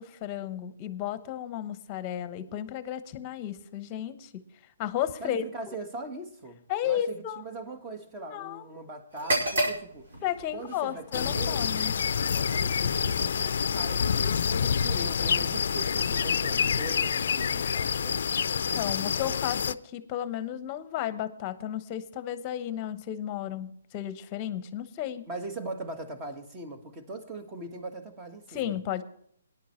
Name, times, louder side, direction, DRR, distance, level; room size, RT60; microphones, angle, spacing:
voice 1, 0.0-4.4 4.8-5.7 6.7-7.4 8.3-8.6 10.2-11.9 18.7-25.3 28.5-29.0, left 11 dB, 25° left, 1.0 m, -33 dB
voice 2, 5.2-10.1 10.5-11.7 12.3-18.2 25.3-28.7, right 2 dB, 20° right, 1.6 m, -40 dB
sound 1, 9.1-16.9, right 1 dB, 70° right, 5.1 m, -36 dB
sound 2, 11.1-19.7, left 7 dB, 65° left, 0.5 m, -27 dB
19.0 x 11.0 x 3.2 m
hypercardioid pair, 150°, 0 cm